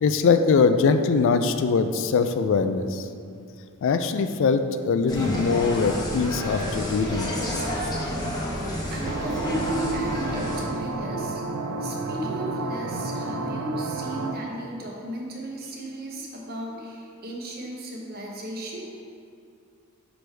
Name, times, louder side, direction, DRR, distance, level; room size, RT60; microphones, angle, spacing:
voice 1, 0.0-3.0 3.8-7.3, left 5 dB, 60° left, 9 dB, 0.3 m, -22 dB
sound 1, 5.0-8.8, equal, 85° left, 1.0 m, -40 dB
Insect, 5.1-10.6, left 1 dB, 20° left, 0.9 m, -30 dB
voice 2, 8.9-11.4 11.8-18.9, right 1 dB, 45° right, -2 dB, 0.9 m, -34 dB
sound 2, 9.0-14.3, right 2 dB, 65° right, 0.4 m, -31 dB
6.1 x 4.8 x 3.3 m, 2.5 s
head